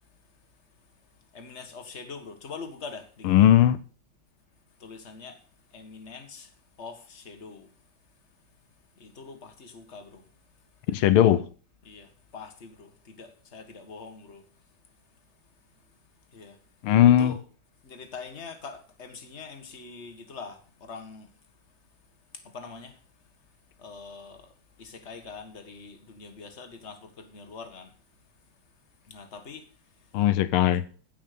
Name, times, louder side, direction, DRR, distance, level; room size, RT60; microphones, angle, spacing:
voice 1, 1.3-3.5 4.8-5.4 5.7-6.5 6.8-7.7 9.0-10.2 11.8-14.4 16.3-16.6 17.2-17.4 17.8-21.3 22.5-23.0 23.8-24.5 24.8-27.9 29.1-29.7, left 4 dB, 35° left, 1.9 m, -43 dB
voice 2, 3.2-3.8 10.9-11.4 16.8-17.3 30.1-30.8, left 11 dB, 90° left, 1.6 m, -18 dB
16.0 x 5.9 x 6.8 m
omnidirectional pair, 2.3 m